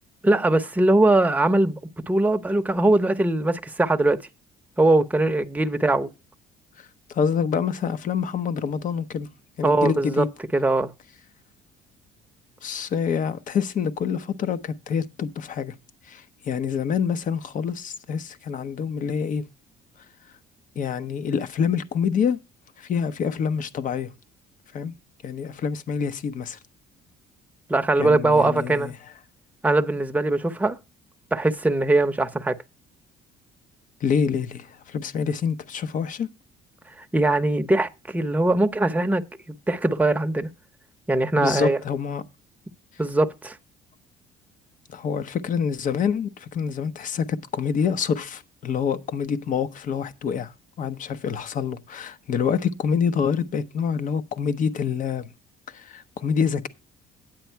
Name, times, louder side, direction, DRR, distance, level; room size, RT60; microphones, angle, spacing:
voice 1, 0.2-1.8 2.1-4.2 4.8-6.1 9.6-10.3 10.5-10.9 27.7-28.9 29.6-30.8 31.3-32.6 37.1-40.5 41.1-41.8 43.0-43.6, right 2 dB, 10° right, 0.8 m, -21 dB
voice 2, 7.1-9.3 9.6-10.3 12.6-15.7 16.1-19.4 20.8-22.4 22.8-24.1 24.7-24.9 25.2-26.6 28.0-28.9 34.0-36.3 41.4-42.2 44.9-55.3 55.7-56.7, left 6 dB, 50° left, 0.9 m, -26 dB
9.2 x 8.3 x 4.5 m
cardioid pair, 110°, 17 cm